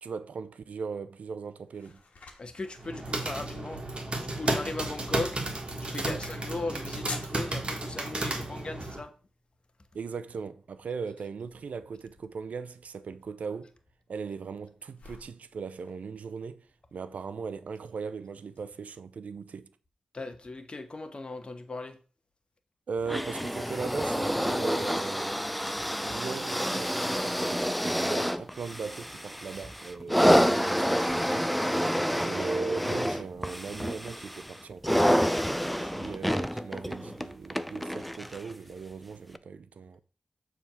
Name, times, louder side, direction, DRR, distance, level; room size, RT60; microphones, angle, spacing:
voice 1, 0.0-2.0 6.1-6.2 9.9-13.7 14.1-19.7 22.9-25.4 26.0-31.5 32.2-35.2 35.8-40.0, right 5 dB, 80° right, 0.5 m, -38 dB
sound 1, 1.1-18.6, left 3 dB, 75° left, 1.5 m, -52 dB
voice 2, 2.4-3.8 4.2-5.4 5.8-9.1 20.1-22.0, left 2 dB, 45° left, 1.2 m, -37 dB
sound 2, 2.8-9.0, right 2 dB, 45° right, 1.6 m, -33 dB
sound 3, 23.1-38.5 39.3-39.4, equal, ahead, 0.4 m, -28 dB
7.0 x 3.6 x 5.9 m
cardioid pair, 70°, 2 cm